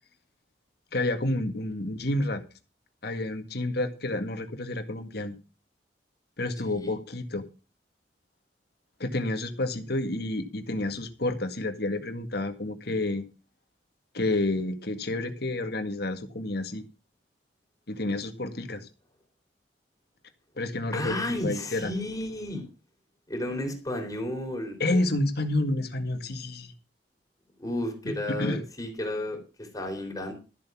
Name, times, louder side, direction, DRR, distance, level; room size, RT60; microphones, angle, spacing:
voice 1, 0.9-2.4 3.0-5.4 6.4-7.5 9.0-13.3 14.1-16.8 17.9-18.9 20.6-21.9 24.8-26.7 28.0-28.6, left 2 dB, 65° left, 8 dB, 1.9 m, -29 dB
voice 2, 20.9-22.6 23.3-24.8 27.6-30.3, left 1 dB, 20° left, 2 dB, 3.8 m, -32 dB
13.5 x 7.7 x 6.1 m, 0.32 s
head